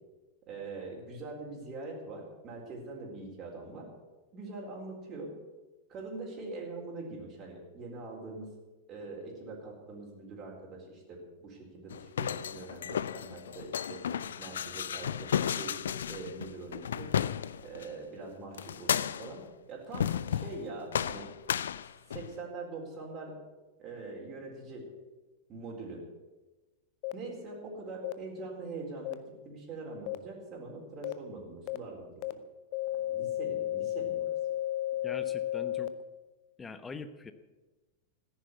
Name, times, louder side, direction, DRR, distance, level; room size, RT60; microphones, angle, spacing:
voice 1, 0.5-3.9 4.3-5.3 5.9-8.5 8.9-14.0 14.4-15.8 16.1-17.2 17.6-21.3 22.1-23.4 23.8-24.9 25.5-26.0 27.1-32.1 32.9-34.3, right 3 dB, 30° right, -2 dB, 4.1 m, -43 dB
sound 1, 11.9-17.9 18.6-19.4 19.9-20.6 20.9-22.4, left 9 dB, 65° left, 0.4 m, -33 dB
sound 2, 27.0-27.1 28.0-28.1 29.1-29.2 30.1-30.2 31.0-31.1 31.7-31.8 32.2-32.3 32.7-35.9, left 13 dB, 45° left, 0.8 m, -33 dB
voice 2, 35.0-35.9 36.6-37.3, left 4 dB, 15° left, 11 dB, 1.1 m, -43 dB
14.5 x 10.0 x 8.1 m, 1.2 s
figure-of-eight pair, 95°, 0 cm